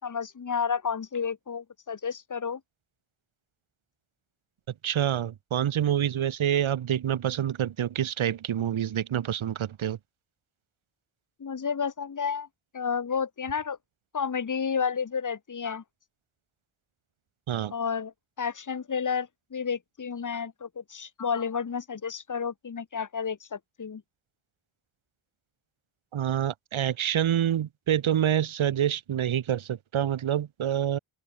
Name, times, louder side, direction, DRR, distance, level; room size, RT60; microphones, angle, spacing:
voice 1, 0.0-2.6 11.4-12.5 12.7-13.8 14.1-15.8 17.7-24.0, left 6 dB, 40° left, 1.7 m, -31 dB
voice 2, 4.8-10.0 17.5-17.7 26.1-31.0, right 10 dB, 75° right, 1.5 m, -27 dB
open air
cardioid pair, 75°, 49 cm